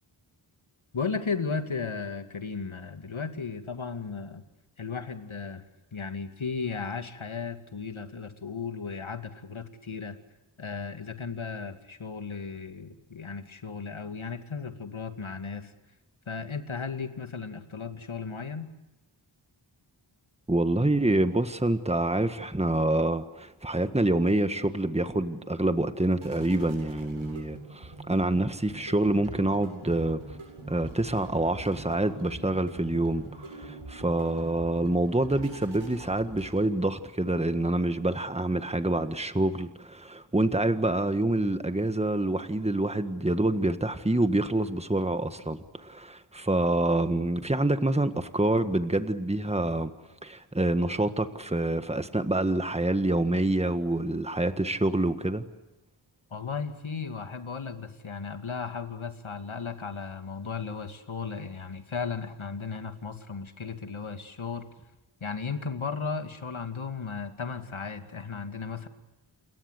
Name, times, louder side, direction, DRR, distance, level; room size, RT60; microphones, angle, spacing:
voice 1, 0.9-4.4 4.8-5.6 5.9-10.2 10.6-15.7 16.3-18.7 56.3-64.7 65.2-68.9, left 5 dB, 75° left, 7 dB, 2.5 m, -35 dB
voice 2, 20.5-30.2 30.7-49.9 50.2-55.4, right 1 dB, 15° right, 10 dB, 1.6 m, -26 dB
sound 1, 24.5-36.9, right 3 dB, 85° right, 7.9 m, -45 dB
28.5 x 22.0 x 8.2 m, 1.0 s
wide cardioid pair, 70°, 48 cm